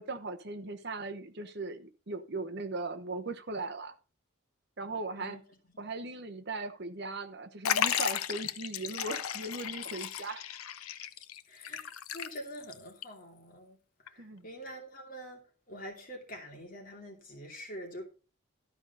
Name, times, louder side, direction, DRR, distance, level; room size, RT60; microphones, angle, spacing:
voice 1, 0.0-4.0 4.8-5.4 5.8-10.4 14.2-14.5, right 3 dB, 50° right, 1.0 m, -38 dB
Liquid, 7.6-12.7 13.0-13.1 14.1-14.2, left 9 dB, 85° left, 0.6 m, -34 dB
voice 2, 11.5-13.8 14.0-15.4 15.7-18.0, equal, 40° left, 2.5 m, -45 dB
12.5 x 4.9 x 5.5 m
head